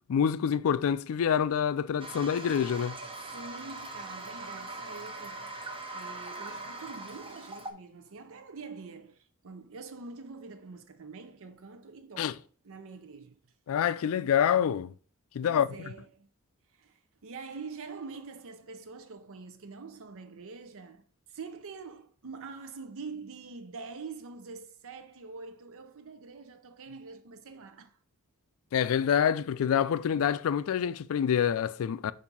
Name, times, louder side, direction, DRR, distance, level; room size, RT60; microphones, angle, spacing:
voice 1, 0.1-3.0 12.2-12.3 13.7-14.9 15.3-15.7 28.7-32.1, left 8 dB, 65° left, 0.3 m, -26 dB
Toilet flush, 2.0-7.7, right 2 dB, 25° right, 0.8 m, -41 dB
voice 2, 3.2-5.6 5.9-13.4 15.4-16.3 16.7-28.0, right 4 dB, 65° right, 0.6 m, -45 dB
7.2 x 2.7 x 5.4 m
head